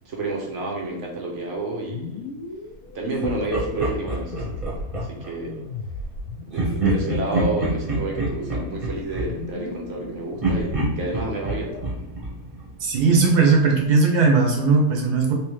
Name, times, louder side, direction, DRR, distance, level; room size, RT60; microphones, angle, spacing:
voice 1, 0.0-2.3 2.9-5.7 6.5-12.1, right 2 dB, 60° right, 0 dB, 0.8 m, -30 dB
sound 1, 1.9-11.8, left 3 dB, 65° left, 1.0 m, -36 dB
Laughter, 3.2-5.3 6.5-10.0 10.4-13.2, right 2 dB, 25° right, 0.8 m, -27 dB
voice 2, 12.8-15.3, right 4 dB, 75° right, 0 dB, 1.2 m, -18 dB
3.4 x 2.9 x 3.0 m, 0.80 s
omnidirectional pair, 1.8 m